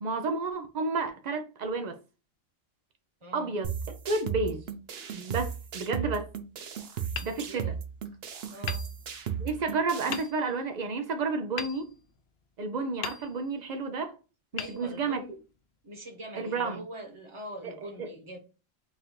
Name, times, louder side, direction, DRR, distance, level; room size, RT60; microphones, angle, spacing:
voice 1, 0.0-2.0 3.3-4.6 5.1-6.3 7.2-7.8 9.4-11.9 12.6-14.2 14.5-15.2 16.4-16.8 17.6-18.1, right 3 dB, 75° right, 0.4 m, -31 dB
voice 2, 3.2-3.6 7.4-7.8 8.5-8.9 14.6-15.3 15.8-18.4, equal, 25° right, 0.9 m, -43 dB
sound 1, 3.6-10.2, right 8 dB, 55° right, 0.8 m, -36 dB
Hammer, 7.1-8.1 8.6-9.6 10.1-10.7 11.6-12.5 13.0-13.8 14.5-15.5, left 8 dB, 60° left, 0.7 m, -41 dB
4.2 x 2.5 x 4.4 m
omnidirectional pair, 1.4 m